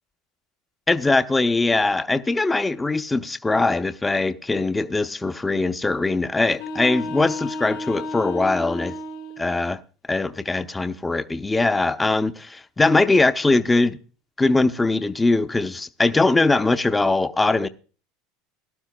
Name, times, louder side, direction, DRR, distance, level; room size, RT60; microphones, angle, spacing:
voice 1, 0.9-9.0 9.4-9.8 10.1-14.0 14.4-17.7, left 3 dB, 15° left, 0.6 m, -21 dB
sound 1, 6.5-9.5, left 2 dB, 75° left, 4.5 m, -32 dB
18.5 x 11.5 x 2.2 m
supercardioid pair, 110°, 0 cm